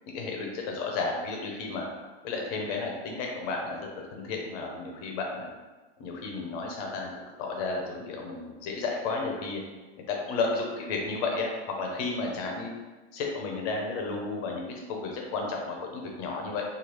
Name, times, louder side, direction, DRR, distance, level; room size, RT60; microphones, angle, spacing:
voice 1, 0.1-1.9 2.2-5.5 6.0-7.1 7.4-9.6 10.1-11.5 11.8-12.7 13.1-16.6, left 3 dB, 35° left, 0 dB, 0.5 m, -32 dB
3.1 x 2.3 x 3.0 m, 1.2 s
supercardioid pair, 160°, 33 cm